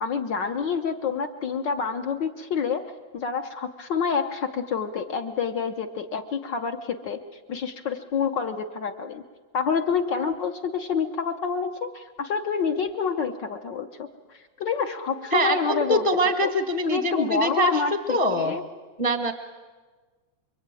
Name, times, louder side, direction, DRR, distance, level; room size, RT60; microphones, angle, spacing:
voice 1, 0.0-2.9 3.1-7.2 7.5-9.2 9.5-16.0 16.4-16.5 16.8-18.6, left 6 dB, 65° left, 7 dB, 1.1 m, -28 dB
voice 2, 15.3-17.7 18.1-18.5 19.0-19.3, right 1 dB, 25° left, 6 dB, 0.7 m, -23 dB
27.0 x 24.0 x 9.1 m, 1.4 s
omnidirectional pair, 3.3 m